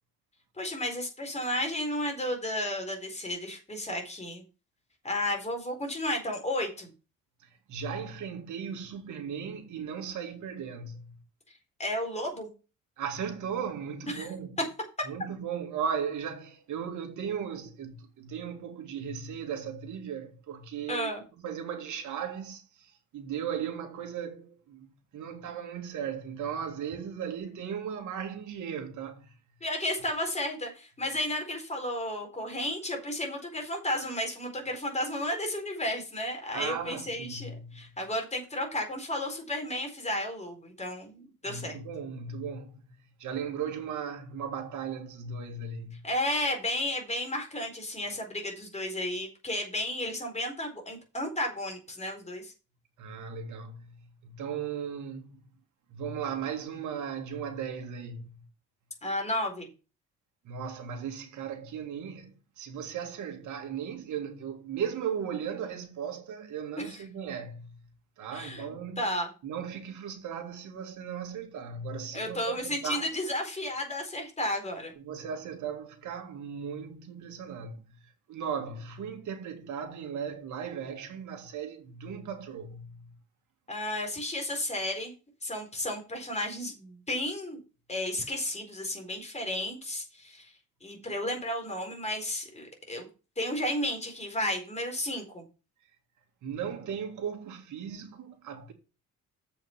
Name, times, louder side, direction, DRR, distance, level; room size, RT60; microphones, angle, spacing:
voice 1, 0.6-4.4 5.0-6.9 11.8-12.5 14.1-14.3 20.9-21.2 29.6-41.8 46.0-52.5 59.0-59.7 66.9-67.0 68.3-69.3 72.1-74.9 83.7-85.1 85.4-87.6 87.9-90.5 90.8-93.1 93.4-95.4, left 1 dB, 20° left, 4.3 m, -33 dB
voice 2, 7.7-11.2 13.0-14.5 15.1-21.1 21.4-29.3 36.5-37.9 41.5-46.1 53.0-55.4 55.9-58.5 60.4-67.9 68.2-69.1 69.4-73.1 75.0-83.1 96.4-98.7, right 7 dB, 75° right, 2.3 m, -37 dB
7.4 x 5.7 x 7.3 m
cardioid pair, 90°, 30 cm